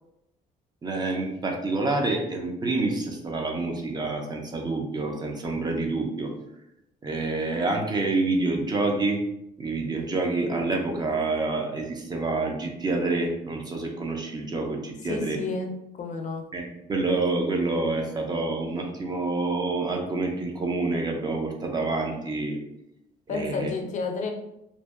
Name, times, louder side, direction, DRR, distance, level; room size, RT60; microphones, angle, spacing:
voice 1, 0.8-6.3 7.0-9.2 9.6-15.4 16.5-22.6 23.3-23.7, right 3 dB, 25° right, 2 dB, 0.4 m, -27 dB
voice 2, 15.0-15.7 16.0-16.4 23.3-24.3, left 4 dB, 45° left, 3 dB, 0.4 m, -30 dB
2.5 x 2.1 x 2.3 m, 0.83 s
cardioid pair, 110°, 17 cm